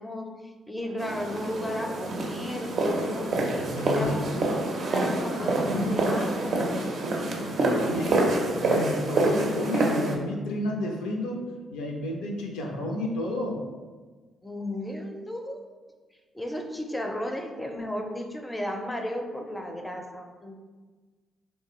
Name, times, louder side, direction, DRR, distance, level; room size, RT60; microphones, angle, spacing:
voice 1, 0.0-3.4 3.8-6.7 7.1-8.1 14.4-15.6 16.3-20.5, left 1 dB, 10° left, 3 dB, 0.4 m, -34 dB
sound 1, 1.0-10.2, right 2 dB, 55° right, 0.5 m, -27 dB
voice 2, 3.6-4.4 7.4-13.6, left 1 dB, 75° left, 1 dB, 0.4 m, -31 dB
3.1 x 2.1 x 2.9 m, 1.4 s
hypercardioid pair, 40°, 0 cm